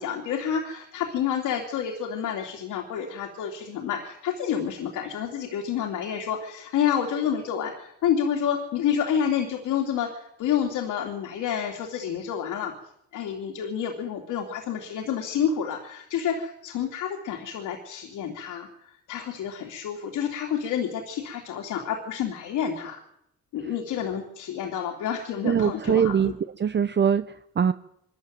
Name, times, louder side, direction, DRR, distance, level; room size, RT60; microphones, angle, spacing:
voice 1, 0.0-12.7 13.1-18.7 19.1-23.0 23.5-26.3, left 8 dB, 90° left, 1 dB, 3.1 m, -29 dB
voice 2, 25.4-26.3 26.6-27.7, right 7 dB, 35° right, 12 dB, 0.9 m, -22 dB
23.0 x 14.0 x 9.2 m, 0.76 s
cardioid pair, 90°, 30 cm